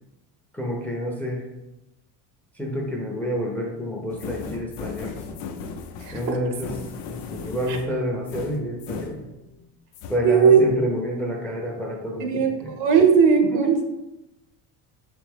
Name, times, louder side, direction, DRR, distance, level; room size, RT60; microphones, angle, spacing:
voice 1, 0.5-1.4 2.6-5.4 6.1-6.7 7.1-9.3 10.1-12.7 13.5-13.7, equal, 5° left, 0 dB, 0.5 m, -29 dB
sound 1, 4.1-9.7 9.9-10.2, left 5 dB, 70° left, 0.6 m, -37 dB
voice 2, 6.0-6.4 10.2-10.6 12.2-13.8, right 6 dB, 75° right, 3 dB, 0.9 m, -18 dB
3.5 x 2.8 x 3.4 m, 0.97 s
cardioid pair, 110°, 44 cm